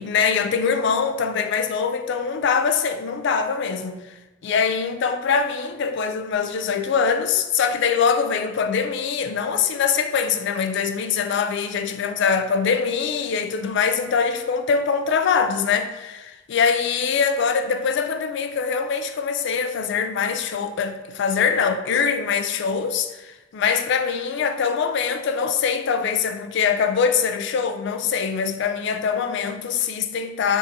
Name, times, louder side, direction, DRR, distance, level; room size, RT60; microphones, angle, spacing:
voice 1, 0.0-4.1 4.4-30.6, left 6 dB, 65° left, 0.3 m, -23 dB
3.5 x 2.8 x 3.9 m
head